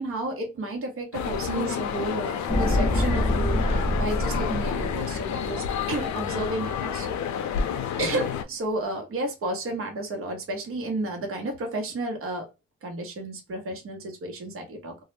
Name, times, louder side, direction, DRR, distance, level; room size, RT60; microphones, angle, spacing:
voice 1, 0.0-7.1 8.0-12.5 12.8-15.0, right 2 dB, 45° right, 2 dB, 0.9 m, -32 dB
sound 1, 1.1-8.4, left 8 dB, 70° left, 0.5 m, -30 dB
sound 2, 2.5-6.8 7.0-7.1, left 1 dB, 10° left, 0.5 m, -27 dB
2.3 x 2.1 x 3.1 m, 0.25 s
cardioid pair, 90°, 30 cm